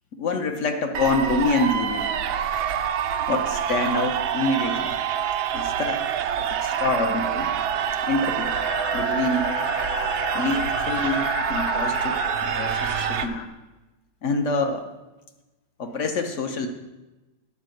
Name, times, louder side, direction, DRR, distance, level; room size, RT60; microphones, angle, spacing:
voice 1, 0.1-2.1 3.3-5.0 5.5-6.0 6.5-7.5 8.0-8.5 8.9-9.5 9.8-9.9 10.3-13.4 14.2-14.8 15.8-16.7, left 3 dB, 55° left, 5 dB, 0.8 m, -26 dB
sound 1, 0.9-13.3, right 8 dB, 85° right, 1.4 m, -26 dB
sound 2, 8.4-13.5, left 9 dB, 80° left, 1.5 m, -33 dB
10.0 x 4.9 x 7.7 m, 1.1 s
omnidirectional pair, 2.2 m